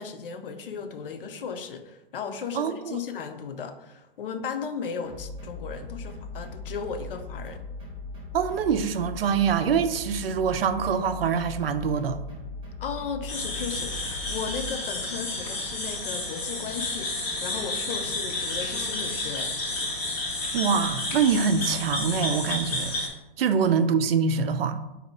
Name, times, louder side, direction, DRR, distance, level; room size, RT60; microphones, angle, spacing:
voice 1, 0.0-7.6 12.8-19.5, left 6 dB, 70° left, 8 dB, 0.6 m, -35 dB
voice 2, 2.5-3.0 8.3-12.2 20.5-23.0 23.4-24.8, right 6 dB, 80° right, 10 dB, 0.5 m, -24 dB
sound 1, 5.0-14.7, left 3 dB, 15° right, 0.9 m, -39 dB
sound 2, 13.3-23.1, left 2 dB, 15° left, 0.5 m, -31 dB
4.1 x 2.7 x 4.1 m, 0.96 s
hypercardioid pair, 160°, 29 cm